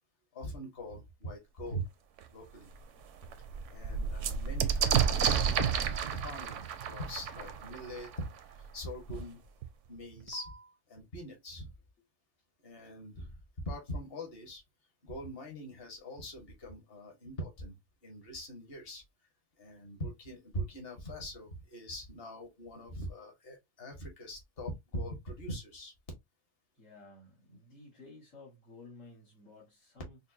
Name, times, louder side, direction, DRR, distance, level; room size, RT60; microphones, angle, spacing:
voice 1, 0.3-1.9 2.3-2.7 3.7-8.3 8.6-9.4 9.9-10.5 10.9-11.7 12.6-13.3 13.6-14.6 15.0-17.7 18.0-19.0 19.6-25.9, equal, 50° left, 1.5 m, -42 dB
sound 1, 2.2-2.3 2.7-2.8 3.1-8.7 9.6-9.7 10.0-10.6, right 7 dB, 80° right, 0.9 m, -31 dB
voice 2, 26.7-30.2, left 3 dB, 80° left, 2.1 m, -54 dB
5.2 x 2.2 x 2.6 m
omnidirectional pair, 1.3 m